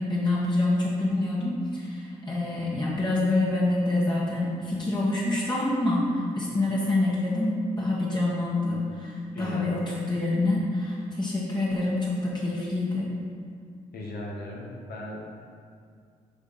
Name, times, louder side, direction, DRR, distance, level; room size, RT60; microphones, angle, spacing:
voice 1, 0.0-13.1, left 2 dB, 25° left, -7 dB, 1.5 m, -26 dB
voice 2, 9.3-9.8 13.9-15.3, left 1 dB, 60° left, -2 dB, 1.5 m, -37 dB
6.5 x 3.5 x 5.2 m, 2.2 s
hypercardioid pair, 50°, 18 cm